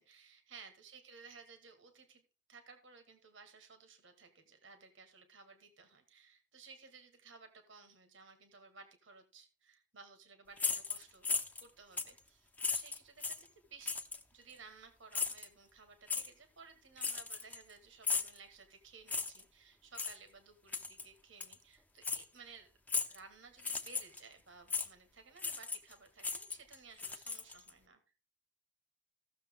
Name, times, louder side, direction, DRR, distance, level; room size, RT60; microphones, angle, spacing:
voice 1, 0.1-2.2 2.5-11.3 11.6-14.0 14.3-22.7 23.1-28.0, right 5 dB, 80° right, 6 dB, 1.7 m, -57 dB
sound 1, 10.6-11.7 12.0-12.2 12.6-13.5 13.9-14.2 15.1-15.5 16.1-16.3 17.0-17.7 18.0-18.4 19.1-19.4 19.9-20.2 20.7-21.1 21.4-21.5 22.0-22.2 22.9-23.2 23.6-24.2 24.7-24.9 25.4-25.9 26.2-27.7, left 5 dB, 10° left, 0.7 m, -36 dB
15.5 x 6.8 x 3.6 m, 0.32 s
head